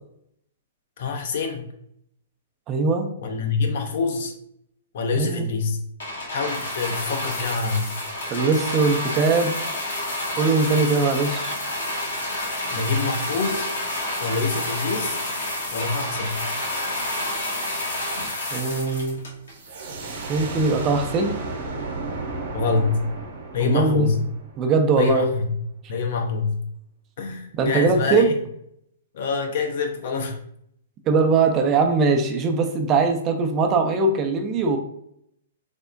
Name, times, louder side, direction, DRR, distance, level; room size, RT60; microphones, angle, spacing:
voice 1, 1.0-1.7 3.2-4.3 4.9-5.8 6.3-7.9 12.7-13.7 14.2-15.2 15.7-16.4 22.5-23.1 23.5-24.2 25.0-25.6 25.9-26.6 27.2-28.3 29.1-30.4, left 4 dB, 55° left, 3 dB, 0.6 m, -25 dB
voice 2, 2.7-3.1 5.2-5.5 8.3-9.5 10.4-11.6 18.5-19.2 20.3-21.4 23.6-24.1 24.6-25.3 27.6-28.3 31.1-34.8, right 4 dB, 30° right, 4 dB, 0.4 m, -21 dB
sound 1, 6.0-19.7 20.4-20.5, left 1 dB, 75° left, 1.1 m, -29 dB
sound 2, 19.5-25.0, right 3 dB, 60° right, 0.7 m, -34 dB
3.4 x 2.0 x 2.5 m, 0.72 s
hypercardioid pair, 120°, 0 cm